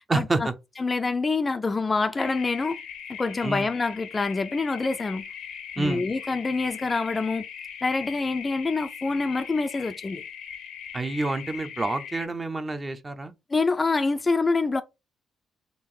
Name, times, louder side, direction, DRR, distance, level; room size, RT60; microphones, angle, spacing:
voice 1, 0.1-0.5 3.4-3.7 5.8-6.1 10.9-13.3, right 2 dB, 25° right, 0.5 m, -28 dB
voice 2, 0.8-2.8 3.1-5.3 5.8-7.4 7.8-10.2 13.5-14.8, left 3 dB, 25° left, 0.4 m, -26 dB
sound 1, 2.2-12.3, left 7 dB, 80° left, 0.7 m, -40 dB
3.6 x 2.4 x 3.7 m
cardioid pair, 90°, 0 cm